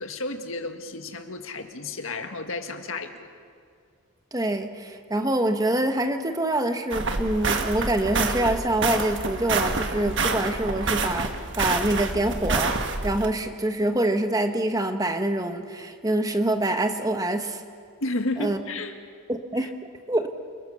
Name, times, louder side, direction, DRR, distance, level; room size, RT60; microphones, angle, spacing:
voice 1, 0.0-3.3 18.0-19.0 19.6-19.7, left 2 dB, 75° left, 6 dB, 1.8 m, -32 dB
voice 2, 4.3-12.8 13.0-17.6 18.4-18.6 19.3-19.7 20.1-20.3, right 1 dB, 15° right, 6 dB, 1.3 m, -25 dB
sound 1, 6.9-13.3, right 3 dB, 60° right, 1.5 m, -27 dB
28.5 x 20.5 x 7.0 m, 2.2 s
head